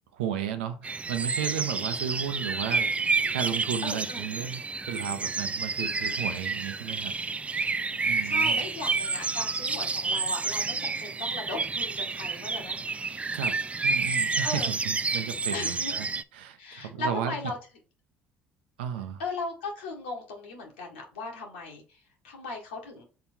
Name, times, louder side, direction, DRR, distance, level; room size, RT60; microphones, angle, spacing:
voice 1, 0.1-2.9 3.3-7.1 8.0-8.6 13.3-13.6 13.8-16.1 16.3-17.4 18.8-19.2, right 9 dB, 85° right, 8 dB, 0.8 m, -34 dB
sound 1, 0.8-16.2, right 4 dB, 25° right, 0.4 m, -29 dB
voice 2, 3.8-4.3 8.0-12.8 14.4-14.7 15.5-16.0 16.6-17.6 19.2-23.0, left 3 dB, 85° left, 0 dB, 1.8 m, -37 dB
5.7 x 4.0 x 4.4 m, 0.36 s
hypercardioid pair, 60°, 6 cm